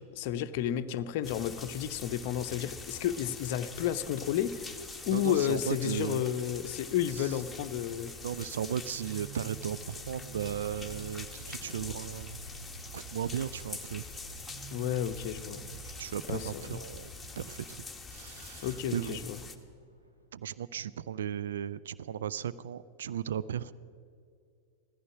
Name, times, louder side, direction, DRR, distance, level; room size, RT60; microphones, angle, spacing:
voice 1, 0.0-4.7 5.1-8.1 14.7-15.6 16.3-16.8 18.6-19.4, left 10 dB, 50° left, 10 dB, 0.7 m, -32 dB
sound 1, 1.2-19.6, left 3 dB, 5° left, 1.3 m, -45 dB
voice 2, 5.1-6.2 7.1-7.4 8.2-12.4 12.9-14.0 16.0-17.1 17.4-17.8 18.1-19.2 20.3-23.7, right 9 dB, 60° right, 17 dB, 0.4 m, -36 dB
sound 2, 8.4-20.3, right 6 dB, 80° right, 1.6 m, -51 dB
16.0 x 14.0 x 5.9 m, 2.3 s
figure-of-eight pair, 90°, 0 cm